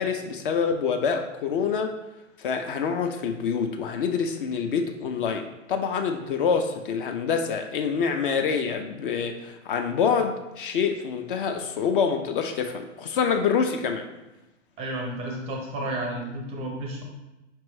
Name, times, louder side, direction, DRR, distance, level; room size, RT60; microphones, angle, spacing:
voice 1, 0.0-1.9 2.4-14.1, left 6 dB, 45° left, 5 dB, 0.4 m, -26 dB
voice 2, 14.8-17.0, right 1 dB, 15° right, 0 dB, 0.4 m, -32 dB
4.5 x 2.9 x 3.1 m, 1.0 s
figure-of-eight pair, 110°, 37 cm